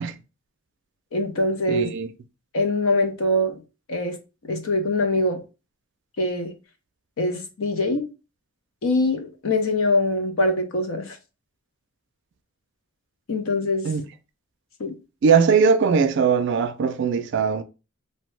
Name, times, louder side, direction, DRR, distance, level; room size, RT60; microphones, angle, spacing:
voice 1, 1.1-1.9 2.5-3.5 3.9-4.2 4.4-5.4 6.2-6.5 7.2-8.1 8.8-11.2 13.3-13.9 14.8-15.0, left 1 dB, 80° left, 0.6 m, -23 dB
voice 2, 1.7-2.1 13.8-14.0 15.2-17.6, right 5 dB, 60° right, 0.3 m, -20 dB
2.7 x 2.1 x 3.1 m
head